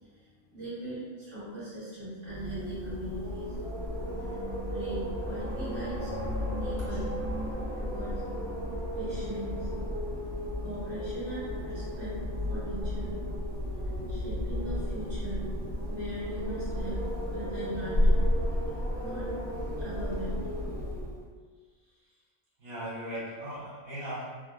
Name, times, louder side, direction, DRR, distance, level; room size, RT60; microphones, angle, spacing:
voice 1, 0.1-3.5 4.2-4.4 4.7-6.1 6.6-7.1 7.8-8.1 8.9-9.7 10.6-12.2 12.5-13.1 13.8-15.4 15.8-17.0 17.3-18.6 19.0-19.3 19.8-20.3, right 1 dB, 45° right, -12 dB, 1.4 m, -40 dB
Wind, 2.2-21.3, equal, 85° right, 1.0 m, -32 dB
voice 2, 22.6-24.2, equal, 30° right, -11 dB, 0.6 m, -38 dB
2.7 x 2.2 x 2.3 m, 1.5 s
omnidirectional pair, 1.3 m